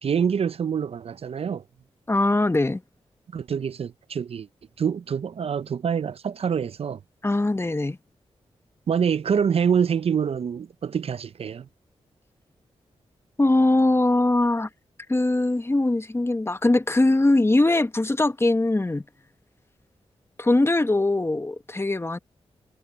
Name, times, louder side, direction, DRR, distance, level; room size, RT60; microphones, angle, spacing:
voice 1, 0.0-1.6 3.3-4.5 4.8-7.0 8.9-11.7, right 7 dB, 60° right, 0.5 m, -25 dB
voice 2, 2.1-2.8 7.2-8.0 13.4-14.7 15.1-19.0 20.4-22.2, left 2 dB, 20° left, 1.1 m, -21 dB
cardioid pair, 55°, 11 cm